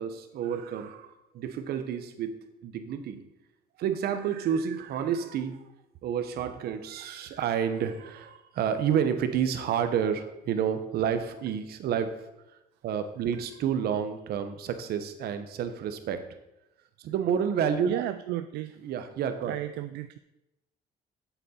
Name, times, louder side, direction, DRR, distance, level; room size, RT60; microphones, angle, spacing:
voice 1, 0.0-3.2 3.8-5.6 6.0-12.1 12.8-16.2 17.0-18.0 18.8-19.5, right 8 dB, 65° right, 9 dB, 1.0 m, -29 dB
voice 2, 17.9-18.8 19.4-20.2, right 14 dB, 85° right, 11 dB, 0.4 m, -33 dB
8.1 x 7.8 x 4.4 m, 0.92 s
cardioid pair, 110°, 17 cm